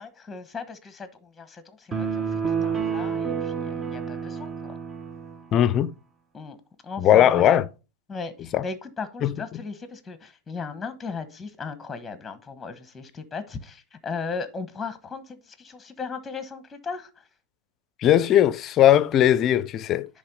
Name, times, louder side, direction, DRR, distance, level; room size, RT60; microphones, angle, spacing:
voice 1, 0.0-4.7 6.3-6.6 6.8-7.6 8.1-17.1, left 5 dB, 15° left, 1.2 m, -36 dB
sound 1, 1.9-5.4, right 6 dB, 20° right, 1.1 m, -29 dB
voice 2, 5.5-5.9 7.0-7.6 8.5-8.6 9.2-9.6 18.0-20.1, left 11 dB, 35° left, 0.6 m, -19 dB
10.5 x 3.5 x 5.3 m
hypercardioid pair, 115°, 0 cm